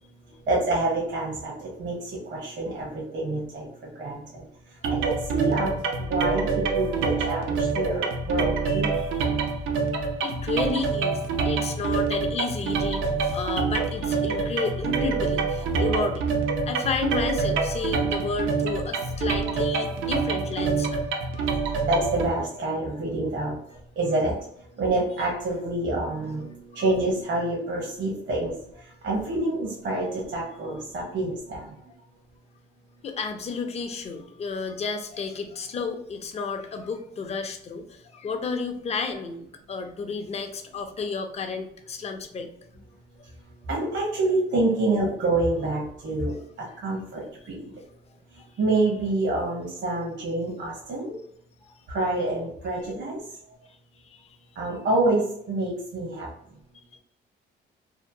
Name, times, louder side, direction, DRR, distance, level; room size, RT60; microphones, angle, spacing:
voice 1, 0.5-3.7 4.0-4.4 4.9-5.8 6.1-8.9 21.9-23.5 24.0-24.4 24.8-28.5 29.0-31.7 43.7-46.3 46.8-47.6 48.6-51.2 51.9-53.2 54.6-56.3, right 2 dB, 65° right, -4 dB, 0.9 m, -27 dB
sound 1, 4.8-22.3, right 4 dB, 90° right, 0.5 m, -26 dB
voice 2, 8.6-9.3 10.2-16.3 16.6-21.1 21.3-21.5 26.7-26.9 31.6-31.7 33.0-42.5 46.3-46.8 47.2-47.3 48.4-48.5 52.8-52.9 54.0-54.4, left 4 dB, 35° left, 6 dB, 0.4 m, -32 dB
2.8 x 2.1 x 2.6 m, 0.68 s
cardioid pair, 90°, 20 cm